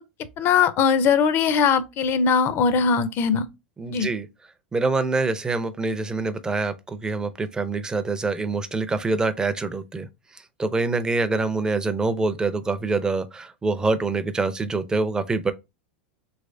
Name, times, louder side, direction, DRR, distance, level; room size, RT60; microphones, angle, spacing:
voice 1, 0.4-3.4 3.9-4.1, left 6 dB, 40° left, 0.5 m, -20 dB
voice 2, 3.8-4.3 4.7-10.1 10.6-15.5, right 3 dB, 15° right, 0.4 m, -25 dB
3.2 x 3.1 x 2.6 m
hypercardioid pair, 105°, 6 cm